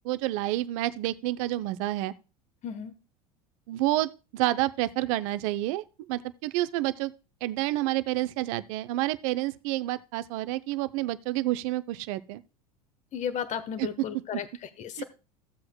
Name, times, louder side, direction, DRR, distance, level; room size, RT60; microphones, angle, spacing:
voice 1, 0.0-2.1 3.7-7.1 7.4-12.4 13.8-13.9 15.0-15.1, right 16 dB, 60° right, 0.6 m, -29 dB
voice 2, 2.6-2.9 13.1-15.0, left 8 dB, 40° left, 1.2 m, -34 dB
15.0 x 7.7 x 2.3 m
hypercardioid pair, 80°, 20 cm